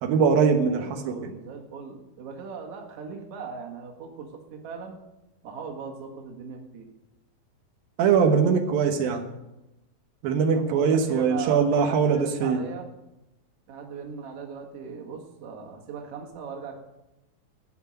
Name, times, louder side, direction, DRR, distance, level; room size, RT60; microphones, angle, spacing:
voice 1, 0.0-1.3 8.0-9.2 10.2-12.6, right 6 dB, 80° right, 4 dB, 2.9 m, -22 dB
voice 2, 0.7-5.0 5.4-6.9 10.5-12.9 13.7-16.8, right 6 dB, 50° right, 1 dB, 2.4 m, -38 dB
15.5 x 5.9 x 8.8 m, 0.95 s
omnidirectional pair, 4.1 m